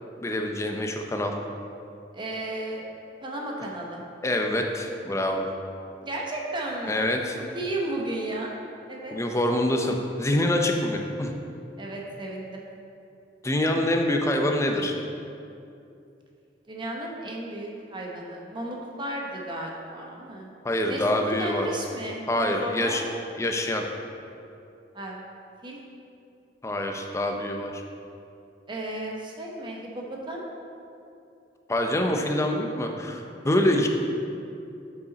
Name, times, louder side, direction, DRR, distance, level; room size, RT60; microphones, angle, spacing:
voice 1, 0.2-1.4 4.2-5.5 6.9-7.4 9.1-11.3 13.4-15.0 20.6-21.7 22.3-23.0 23.4-23.9 26.6-27.8 31.7-33.9, left 1 dB, 15° left, 3 dB, 0.5 m, -25 dB
voice 2, 2.1-2.9 3.2-4.0 6.0-7.1 7.3-8.5 8.9-9.2 11.8-12.6 16.7-20.5 20.9-21.0 21.4-23.0 24.9-25.2 25.6-25.8 28.7-30.4, right 1 dB, 25° right, -1 dB, 0.9 m, -34 dB
8.2 x 5.3 x 4.0 m, 2.6 s
head